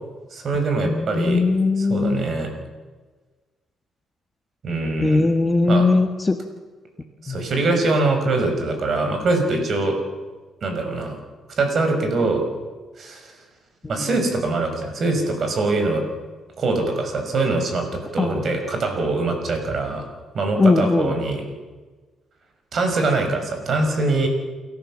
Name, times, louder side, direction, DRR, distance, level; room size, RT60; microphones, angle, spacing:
voice 1, 0.3-1.4 1.8-2.5 4.6-5.3 5.7-5.8 7.2-10.0 10.6-11.2 11.6-12.5 13.0-13.3 13.9-16.0 16.6-17.9 18.1-20.1 20.3-21.4 22.7-24.3, right 3 dB, 50° right, 4 dB, 5.9 m, -23 dB
voice 2, 0.8-2.2 5.0-6.4 7.3-7.4 14.0-14.1 18.2-18.4 20.6-21.2, left 3 dB, 20° left, 7 dB, 1.5 m, -19 dB
29.0 x 14.0 x 7.5 m, 1.3 s
cardioid pair, 90°, 0 cm